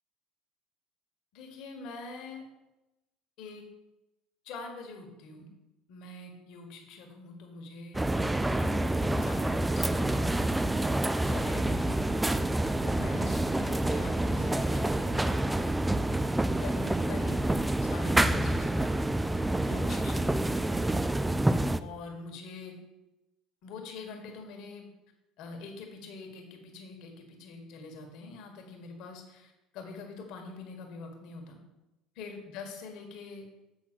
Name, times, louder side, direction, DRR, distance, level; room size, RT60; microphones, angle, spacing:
voice 1, 1.3-2.4 3.4-3.6 4.4-5.5 5.9-8.0 8.5-12.3 12.8-15.1 16.6-17.5 17.8-18.9 19.6-20.6 21.8-22.8 23.6-24.9 25.4-31.6 32.2-33.5, left 3 dB, 65° left, 3 dB, 1.7 m, -44 dB
sound 1, 7.9-21.8, right 1 dB, 10° right, 0.4 m, -28 dB
8.0 x 4.1 x 6.2 m, 0.98 s
hypercardioid pair, 75°, 0 cm